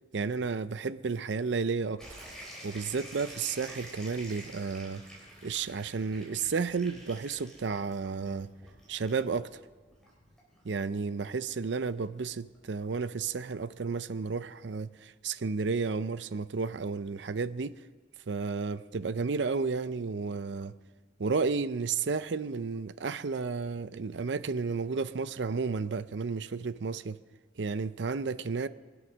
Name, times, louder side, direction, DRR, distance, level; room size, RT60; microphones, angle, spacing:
voice 1, 0.1-2.0 2.6-5.0 5.4-8.5 8.9-9.6 10.6-17.8 18.3-20.7 21.2-27.2 27.6-28.7, right 4 dB, 85° right, 0.6 m, -32 dB
sound 1, 2.0-13.3, equal, 5° left, 4.2 m, -50 dB
23.5 x 8.1 x 6.2 m
head